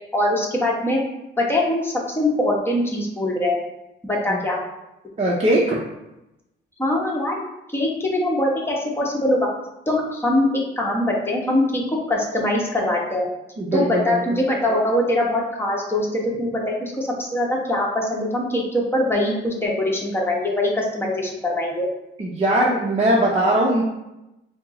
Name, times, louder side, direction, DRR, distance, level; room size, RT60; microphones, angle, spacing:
voice 1, 0.1-1.0 1.4-3.6 4.1-4.6 6.8-7.3 7.7-9.5 9.9-10.5 10.8-13.3 13.7-21.9, left 1 dB, 10° left, -2 dB, 1.0 m, -22 dB
voice 2, 5.2-5.8 13.6-14.4 22.2-23.8, right 1 dB, 30° right, -4 dB, 0.7 m, -20 dB
4.4 x 2.0 x 3.7 m, 0.92 s
cardioid pair, 90°, 20 cm